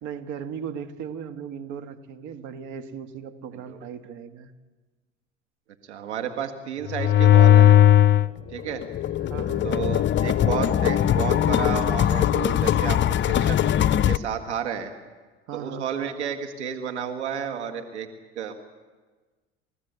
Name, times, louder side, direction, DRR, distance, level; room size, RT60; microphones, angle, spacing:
voice 1, 0.0-4.5 9.3-9.7 15.5-15.9, right 7 dB, 60° right, 8 dB, 1.8 m, -37 dB
voice 2, 5.9-7.8 8.5-8.8 9.6-13.6 14.1-14.9 15.5-18.1 18.4-18.6, right 8 dB, 90° right, 6 dB, 1.9 m, -31 dB
sound 1, 6.9-8.3 8.7-14.2, left 11 dB, 35° left, 0.7 m, -19 dB
29.5 x 15.0 x 8.2 m, 1.3 s
hypercardioid pair, 75°, 33 cm